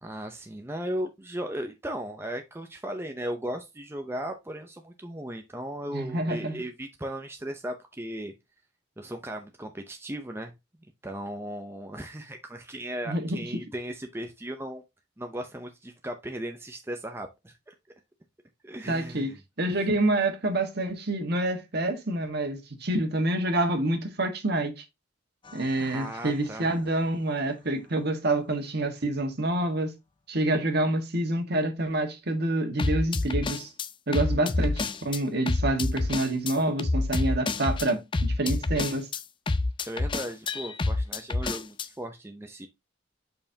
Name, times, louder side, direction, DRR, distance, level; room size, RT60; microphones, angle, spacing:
voice 1, 0.0-8.3 9.0-10.5 11.0-14.8 15.2-17.7 18.6-19.4 25.8-26.7 39.8-42.7, right 1 dB, 15° right, 0.6 m, -36 dB
voice 2, 5.9-6.6 13.1-13.4 18.9-24.8 25.5-29.9 30.3-33.7 34.1-39.1, right 2 dB, 55° right, 1.6 m, -27 dB
sound 1, 25.5-25.7 32.8-35.2 35.5-41.9, left 2 dB, 25° left, 0.4 m, -28 dB
6.7 x 5.5 x 2.8 m
head